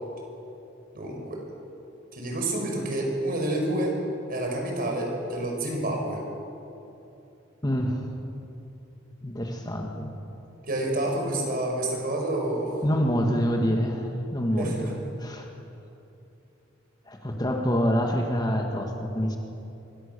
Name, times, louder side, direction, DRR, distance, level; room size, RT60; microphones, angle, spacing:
voice 1, 0.9-1.4 2.1-4.0 4.3-6.2 10.6-12.7 14.6-15.0, right 1 dB, 50° right, 1 dB, 5.6 m, -28 dB
voice 2, 7.6-8.1 9.2-10.1 12.8-15.5 17.1-19.4, equal, 20° left, 2 dB, 2.0 m, -26 dB
25.0 x 23.5 x 7.0 m, 2.8 s
head